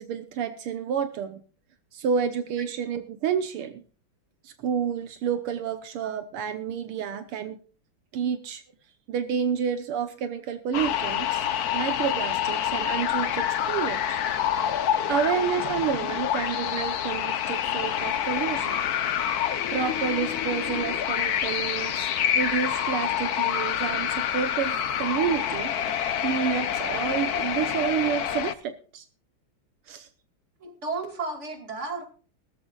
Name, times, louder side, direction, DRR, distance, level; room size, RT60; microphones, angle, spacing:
voice 1, 0.0-1.4 1.9-3.8 4.4-7.6 8.1-8.6 9.1-11.4 11.7-14.2 15.1-18.8 19.7-22.1 22.4-25.7 26.2-29.0 29.9-30.1, right 8 dB, 80° right, 9 dB, 1.9 m, -29 dB
sound 1, 10.7-28.5, left 9 dB, 60° left, 1.0 m, -27 dB
voice 2, 30.6-32.0, right 3 dB, 30° right, 5 dB, 2.6 m, -33 dB
19.5 x 13.5 x 2.4 m, 0.36 s
omnidirectional pair, 2.4 m